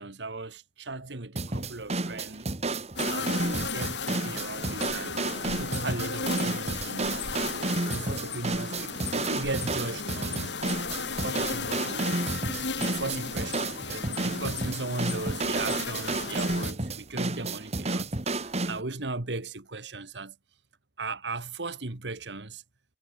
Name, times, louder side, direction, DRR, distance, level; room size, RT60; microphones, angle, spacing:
voice 1, 0.0-7.5 7.9-10.5 11.2-12.3 12.7-20.4 21.0-22.6, right 3 dB, 90° right, 2.0 m, -37 dB
sound 1, 1.4-18.8, right 2 dB, 40° right, 1.9 m, -31 dB
sound 2, 3.0-16.7, left 5 dB, 85° left, 5.0 m, -35 dB
head